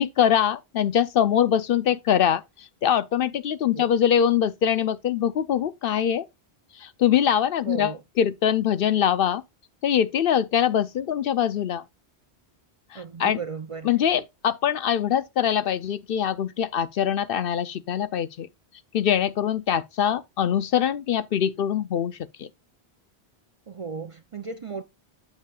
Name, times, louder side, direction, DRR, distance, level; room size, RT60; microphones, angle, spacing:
voice 1, 0.0-6.3 6.8-9.4 9.8-11.8 12.9-13.4 13.8-18.5 18.9-22.5, left 9 dB, 65° left, 0.7 m, -23 dB
voice 2, 7.7-8.0 12.9-14.0 23.7-24.8, right 5 dB, 40° right, 0.5 m, -35 dB
9.4 x 7.1 x 2.3 m
omnidirectional pair, 1.1 m